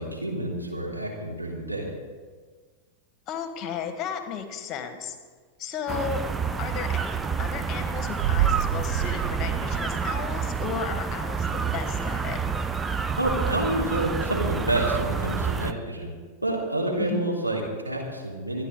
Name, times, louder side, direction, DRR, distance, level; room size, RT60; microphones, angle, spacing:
voice 1, 0.0-1.9 13.2-16.1 16.4-18.6, right 1 dB, 90° right, -4 dB, 3.0 m, -28 dB
voice 2, 3.3-5.2 5.6-6.2 6.6-12.4 17.1-17.3, left 7 dB, 35° left, 8 dB, 1.5 m, -34 dB
sound 1, 5.9-15.7, right 5 dB, 15° right, 0.6 m, -28 dB
sound 2, 8.2-10.9 11.2-11.3, right 12 dB, 50° right, 0.3 m, -29 dB
25.0 x 9.7 x 3.8 m, 1.5 s
figure-of-eight pair, 90°, 0 cm